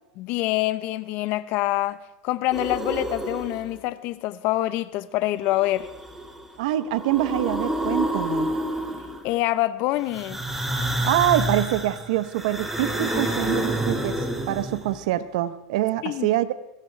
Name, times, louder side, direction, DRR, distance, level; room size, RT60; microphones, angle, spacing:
voice 1, 0.2-2.0 2.2-5.9 9.2-10.4 16.0-16.3, left 16 dB, 55° left, 0.9 m, -25 dB
sound 1, 2.5-3.8 5.5-6.4 6.8-9.3 10.1-15.0, right 1 dB, 5° right, 2.2 m, -28 dB
voice 2, 6.6-8.5 11.0-16.5, right 14 dB, 75° right, 0.9 m, -25 dB
21.5 x 15.5 x 3.4 m
supercardioid pair, 130°, 4 cm